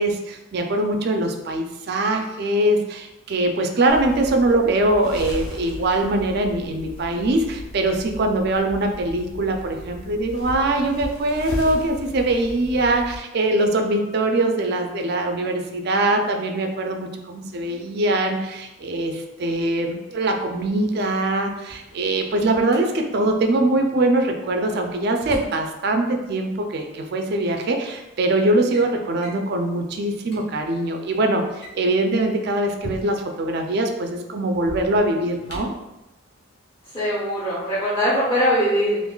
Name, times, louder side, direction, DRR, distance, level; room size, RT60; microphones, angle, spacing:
voice 1, 0.0-35.7, right 2 dB, 50° right, 4 dB, 0.4 m, -22 dB
sound 1, 3.9-13.2, left 1 dB, 75° left, 0.5 m, -36 dB
Drawer open or close, 21.6-22.8 24.5-25.6 26.9-27.0 27.8-28.1 28.4-28.9 29.2-29.5 29.9-30.0 30.2-30.4 31.4-33.4 34.5-35.9, equal, 50° left, 0.9 m, -39 dB
voice 2, 36.9-39.0, equal, 25° left, -12 dB, 1.0 m, -21 dB
3.7 x 2.5 x 2.2 m, 0.98 s
head